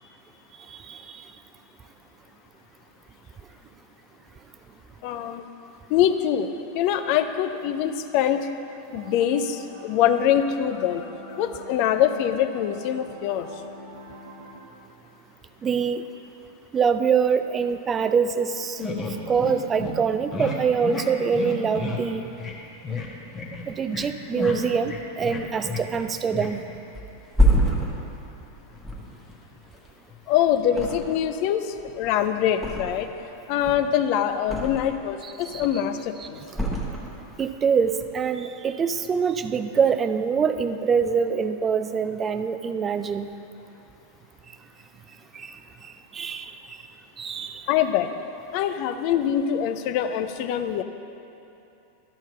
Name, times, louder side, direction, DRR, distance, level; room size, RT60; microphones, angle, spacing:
voice 1, 0.7-1.3 15.6-16.0 16.7-18.8 19.3-22.2 23.7-26.6 35.2-35.7 36.2-36.6 37.4-43.3 45.3-46.8 47.2-47.7, right 6 dB, 20° right, 10 dB, 0.4 m, -25 dB
voice 2, 5.0-5.4 5.9-6.5 6.7-8.5 8.9-13.5 30.3-33.1 33.5-36.4 47.7-48.1 48.5-50.8, left 10 dB, 45° left, 8 dB, 0.5 m, -24 dB
sound 1, 8.9-14.6, right 2 dB, 60° right, 1.0 m, -44 dB
sound 2, 18.8-19.5 19.8-19.9 20.3-20.6 20.8-21.0 21.3-22.0 22.4-22.5 22.8-23.1 23.3-24.1 24.3-26.1 26.3-26.5, left 4 dB, 25° left, 1.3 m, -31 dB
Thump thud, 26.9-30.2 30.7-31.4 31.7-33.2 33.5-35.1 35.4-36.0 36.5-37.5 37.8-38.0, right 1 dB, ahead, 1.4 m, -26 dB
12.5 x 4.5 x 5.6 m, 2.8 s
figure-of-eight pair, 90°, 0 cm